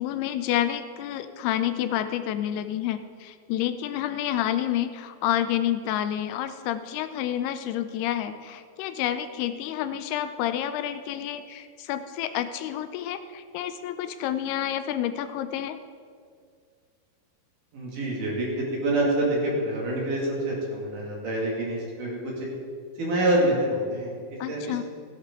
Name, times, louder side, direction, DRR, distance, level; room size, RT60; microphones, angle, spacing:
voice 1, 0.0-15.8 24.4-24.8, left 11 dB, 85° left, 11 dB, 2.6 m, -29 dB
voice 2, 17.7-22.5 23.0-24.8, right 1 dB, 55° right, -3 dB, 3.5 m, -27 dB
14.5 x 11.0 x 3.7 m, 2.1 s
omnidirectional pair, 4.6 m